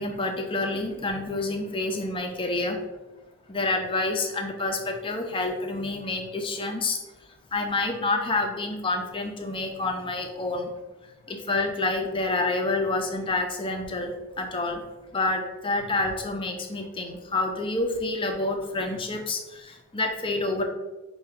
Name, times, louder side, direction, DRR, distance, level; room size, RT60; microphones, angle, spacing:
voice 1, 0.0-2.9 3.5-7.0 7.5-10.7 11.0-14.9 15.1-20.6, left 2 dB, 25° left, 3 dB, 0.5 m, -28 dB
5.5 x 2.4 x 3.4 m, 1.1 s
head